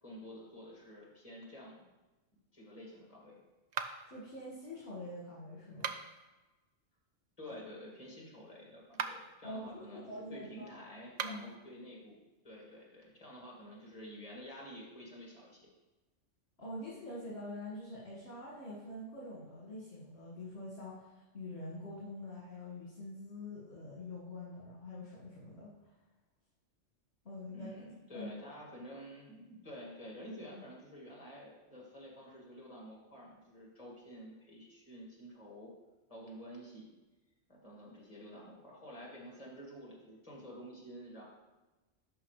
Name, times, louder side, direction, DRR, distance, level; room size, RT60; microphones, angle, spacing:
voice 1, 0.0-1.8 2.5-3.4 7.4-15.7 27.5-35.7 36.1-36.9 37.5-41.2, equal, 30° left, -4 dB, 2.1 m, -50 dB
sound 1, 3.7-4.2 5.7-6.3 8.8-9.4 11.1-11.6, right 6 dB, 65° right, 0.4 m, -40 dB
voice 2, 4.0-5.9 9.4-10.7 11.2-11.4 16.6-25.9 27.2-27.7 28.1-28.3, left 1 dB, 55° left, -7 dB, 2.0 m, -45 dB
11.0 x 4.9 x 3.2 m, 1.1 s
omnidirectional pair, 1.3 m